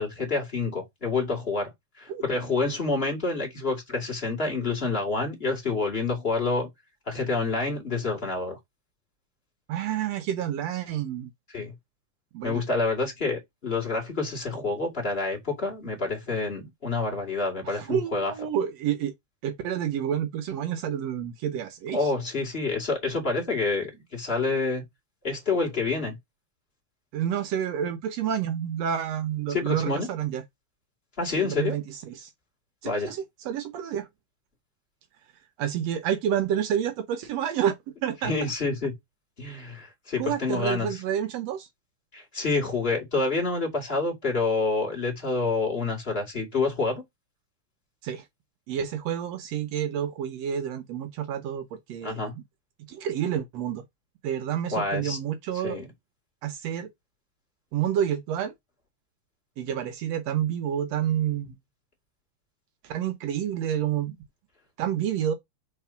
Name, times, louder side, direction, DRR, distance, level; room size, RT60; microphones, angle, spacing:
voice 1, 0.0-1.7 2.0-6.7 7.1-8.6 11.5-11.7 12.4-18.3 21.9-24.8 25.2-26.2 29.5-30.1 31.2-31.8 32.8-33.1 38.2-38.9 39.4-40.9 42.1-47.0 52.0-52.3 54.7-55.2 55.6-55.9, left 3 dB, 20° left, 2.4 m, -28 dB
voice 2, 9.7-11.3 12.3-12.6 17.6-19.1 19.4-22.1 27.1-30.4 31.4-32.3 32.8-34.1 35.6-37.8 38.0-38.3 40.2-41.7 48.0-48.3 48.7-52.2 52.9-53.8 54.2-55.8 56.4-56.9 57.7-58.5 59.6-61.6 62.8-64.2 64.8-65.3, right 9 dB, 70° right, 1.8 m, -29 dB
4.7 x 4.0 x 5.7 m
omnidirectional pair, 3.4 m